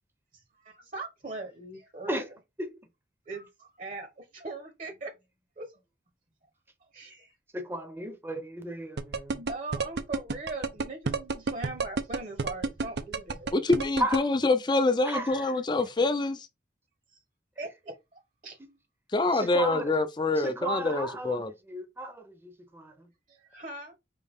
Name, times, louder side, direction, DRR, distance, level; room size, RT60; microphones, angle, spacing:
voice 1, 0.6-2.3 3.3-5.1 5.6-5.7 6.9-7.3 9.3-13.5 17.6-18.6 23.3-23.9, right 2 dB, 45° right, 1.0 m, -40 dB
voice 2, 7.5-9.4 14.0-14.2 15.0-15.6 19.3-19.9 20.4-23.1, right 1 dB, 15° right, 0.7 m, -35 dB
sound 1, 9.0-14.2, right 4 dB, 75° right, 0.6 m, -29 dB
voice 3, 13.5-16.5 19.1-21.5, left 2 dB, 25° left, 0.5 m, -26 dB
5.3 x 2.8 x 3.5 m
head